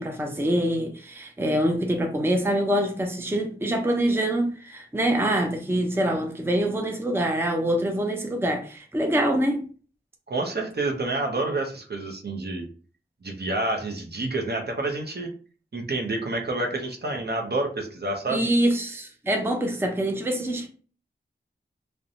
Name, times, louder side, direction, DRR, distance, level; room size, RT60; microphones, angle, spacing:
voice 1, 0.0-9.6 18.3-20.7, right 1 dB, 10° right, 0.5 m, -25 dB
voice 2, 10.3-12.7 13.2-15.3 15.7-18.4, right 2 dB, 55° right, 0.6 m, -28 dB
2.6 x 2.1 x 2.7 m
wide cardioid pair, 60°, 21 cm